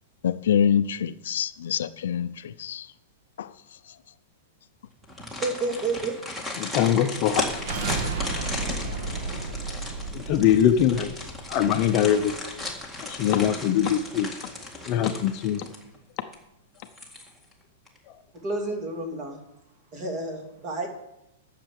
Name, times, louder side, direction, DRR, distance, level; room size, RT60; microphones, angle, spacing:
voice 1, 0.2-2.3 2.6-2.8 3.4-3.5, left 8 dB, 75° left, 0.6 m, -25 dB
sound 1, 5.0-16.0 16.3-16.4 16.8-17.5 17.9-18.0, left 2 dB, 5° right, 1.9 m, -35 dB
voice 2, 5.4-6.2 18.4-19.4 19.9-20.9, right 3 dB, 25° right, 2.7 m, -30 dB
voice 3, 6.6-7.4 10.1-11.1 11.5-12.3 13.0-14.3 14.9-15.7 18.1-18.2, left 10 dB, 35° left, 0.8 m, -22 dB
sound 2, 7.3-12.4, right 3 dB, 45° right, 1.7 m, -33 dB
12.0 x 6.7 x 7.7 m
supercardioid pair, 165°, 0 cm